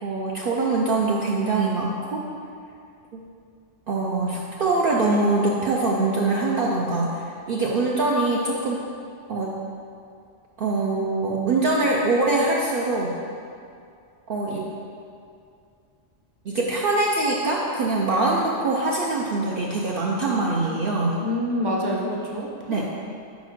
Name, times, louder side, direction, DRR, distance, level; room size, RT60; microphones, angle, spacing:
voice 1, 0.0-2.2 3.9-8.8 9.3-9.6 10.6-13.1 14.3-14.7 16.4-21.2 22.7-22.8, right 2 dB, 60° right, -3 dB, 0.7 m, -23 dB
voice 2, 21.2-22.8, left 1 dB, 25° right, -2 dB, 0.8 m, -27 dB
4.9 x 4.2 x 5.9 m, 2.4 s
omnidirectional pair, 1.2 m